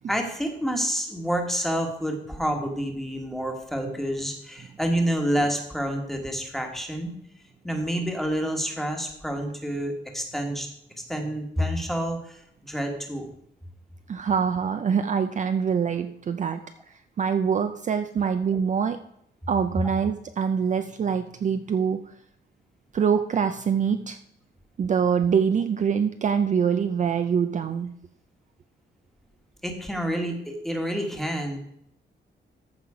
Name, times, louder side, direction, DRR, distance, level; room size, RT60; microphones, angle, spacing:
voice 1, 0.1-7.2 7.6-10.7 11.1-13.3 19.8-19.9 29.6-31.6, equal, ahead, 3 dB, 1.4 m, -28 dB
voice 2, 14.1-16.6 16.9-19.0 19.5-22.1 22.9-24.2 24.8-27.9, right 7 dB, 40° right, 8 dB, 0.4 m, -24 dB
14.0 x 5.7 x 4.8 m, 0.73 s
wide cardioid pair, 175°, 19 cm